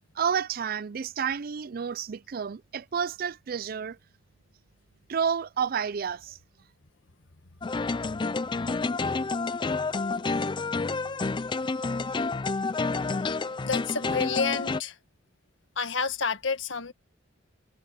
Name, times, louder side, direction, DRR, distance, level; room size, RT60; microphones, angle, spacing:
voice 1, 0.2-4.0 5.1-6.4, right 7 dB, 50° right, 0.4 m, -30 dB
sound 1, 7.6-14.8, left 3 dB, 25° left, 0.4 m, -29 dB
voice 2, 13.6-15.0 15.8-16.9, left 5 dB, 75° left, 1.6 m, -29 dB
head